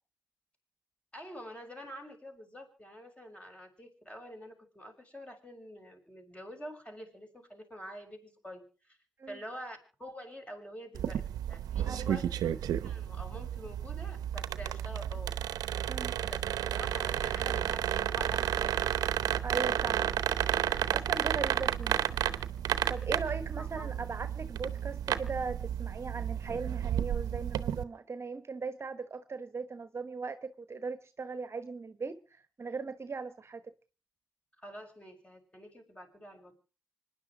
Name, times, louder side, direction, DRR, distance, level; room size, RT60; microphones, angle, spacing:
voice 1, 1.1-9.0 9.3-15.3 16.2-18.8 23.0-23.3 23.6-24.1 34.6-36.5, equal, 20° left, 6.5 m, -47 dB
sound 1, 10.9-27.8, right 10 dB, 75° right, 0.8 m, -32 dB
voice 2, 15.9-16.2 19.4-20.2 20.9-22.0 22.9-33.6, right 4 dB, 40° right, 1.1 m, -39 dB
25.5 x 10.5 x 4.9 m
supercardioid pair, 45°, 7 cm